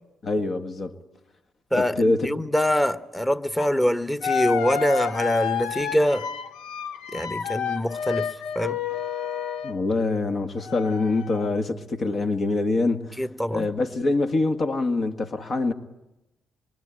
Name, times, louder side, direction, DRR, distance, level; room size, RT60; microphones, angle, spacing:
voice 1, 0.2-1.0 1.7-2.3 9.6-13.2 13.5-15.7, left 2 dB, 50° left, 1.8 m, -25 dB
voice 2, 1.7-6.3 7.1-8.8 13.2-13.7, equal, 10° left, 1.4 m, -24 dB
sound 1, 3.6-3.7 4.2-9.8 10.6-11.5, left 7 dB, 80° left, 1.0 m, -30 dB
26.5 x 23.5 x 9.1 m
hypercardioid pair, 50°, 0 cm